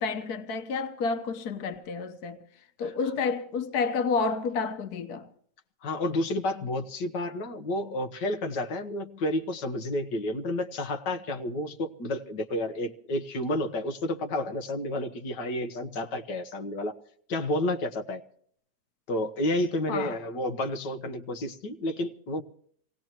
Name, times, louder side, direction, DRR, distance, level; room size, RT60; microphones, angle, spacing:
voice 1, 0.0-2.4 2.8-5.3 19.9-20.2, left 4 dB, 65° left, 1.6 m, -30 dB
voice 2, 5.8-17.0 17.3-18.2 19.1-22.4, left 1 dB, 90° left, 1.9 m, -30 dB
26.0 x 18.0 x 3.0 m
omnidirectional pair, 1.8 m